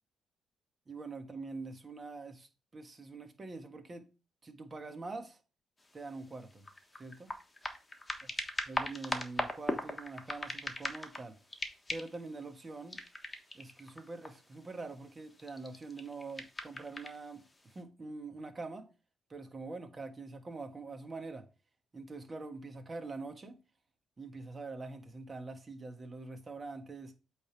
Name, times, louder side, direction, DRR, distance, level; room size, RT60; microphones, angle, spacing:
voice 1, 0.9-4.1 4.4-5.4 5.9-6.6 7.0-7.3 8.7-11.4 11.9-13.0 13.5-17.4 17.7-18.9 19.3-21.5 21.9-23.6 24.2-27.1, right 3 dB, 30° right, 1.5 m, -44 dB
sound 1, 5.8-5.9 6.3-11.2 11.5-12.3 12.9-14.5 15.3-17.2 17.8-17.9, left 2 dB, 20° left, 1.3 m, -39 dB
8.3 x 3.5 x 4.6 m
cardioid pair, 90°, 0 cm